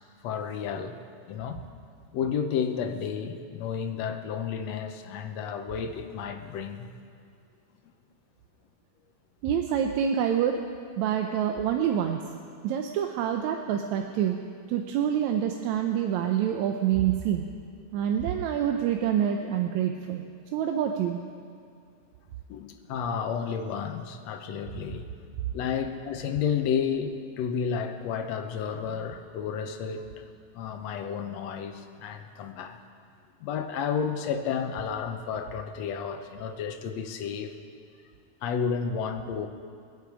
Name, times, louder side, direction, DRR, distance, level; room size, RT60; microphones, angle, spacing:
voice 1, 0.2-1.0 1.3-1.6 2.1-6.9 22.5-25.1 25.5-30.2 30.5-32.8 33.4-37.6 38.4-39.5, left 7 dB, 70° left, 7 dB, 1.9 m, -31 dB
voice 2, 9.4-10.6 11.0-12.2 12.6-14.4 14.7-17.5 17.9-20.2 20.5-21.2, right 9 dB, 80° right, 4 dB, 2.0 m, -26 dB
24.0 x 8.5 x 4.9 m, 2.3 s
omnidirectional pair, 3.4 m